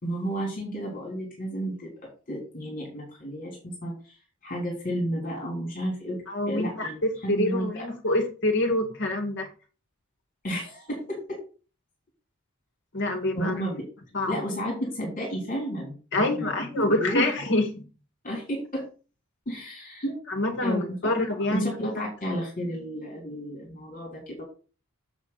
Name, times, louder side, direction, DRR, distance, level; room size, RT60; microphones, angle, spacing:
voice 1, 0.0-3.9 4.4-7.7 10.4-11.4 13.3-13.8 14.3-17.5 18.2-18.8 19.4-20.2 20.6-21.1 21.5-24.4, equal, 40° left, -2 dB, 3.5 m, -32 dB
voice 2, 6.3-9.5 12.9-13.6 14.1-14.4 16.1-17.6 20.3-22.0, left 1 dB, 55° left, 5 dB, 2.0 m, -26 dB
7.8 x 7.2 x 4.1 m, 0.36 s
head